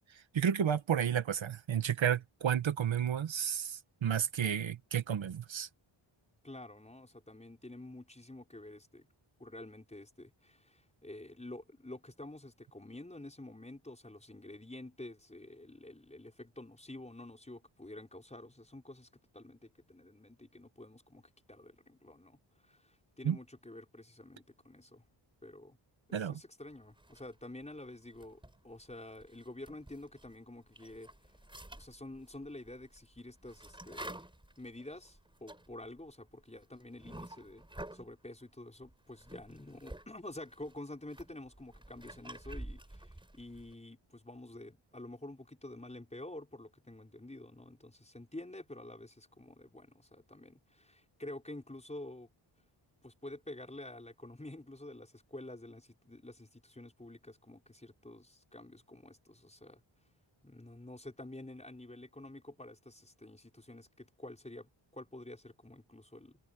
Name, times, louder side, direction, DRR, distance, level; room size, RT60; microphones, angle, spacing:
voice 1, 0.1-5.7 23.2-23.4 26.1-26.4, right 8 dB, 65° right, 1.6 m, -32 dB
voice 2, 6.4-9.1 9.4-25.0 25.4-25.8 26.1-31.1 31.7-34.2 34.6-52.3 53.0-59.8 60.4-66.4, left 1 dB, 15° left, 6.1 m, -49 dB
sound 1, 26.9-27.6 28.1-30.4 30.7-38.1 38.8-40.1 40.3-43.7, right 1 dB, 10° right, 4.7 m, -50 dB
wide cardioid pair, 105°, 49 cm